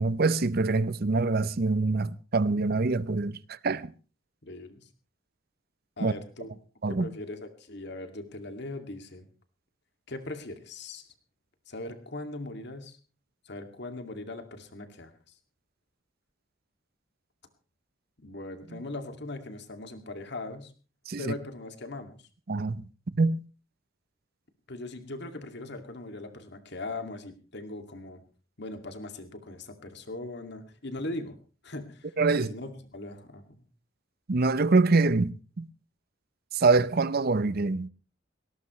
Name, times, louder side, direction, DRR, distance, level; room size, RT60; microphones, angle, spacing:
voice 1, 0.0-3.9 6.0-6.1 6.8-7.1 18.7-18.8 21.1-21.3 22.5-22.8 23.1-23.4 32.2-32.5 34.3-35.7 36.5-37.9, right 3 dB, 50° right, 0.7 m, -25 dB
voice 2, 4.4-4.9 6.0-6.5 6.9-9.3 10.1-11.0 11.7-13.0 13.4-15.1 18.2-20.7 21.2-22.3 24.7-28.2 28.6-31.4 31.6-33.6, left 2 dB, 60° left, 2.3 m, -40 dB
19.0 x 18.0 x 3.2 m
head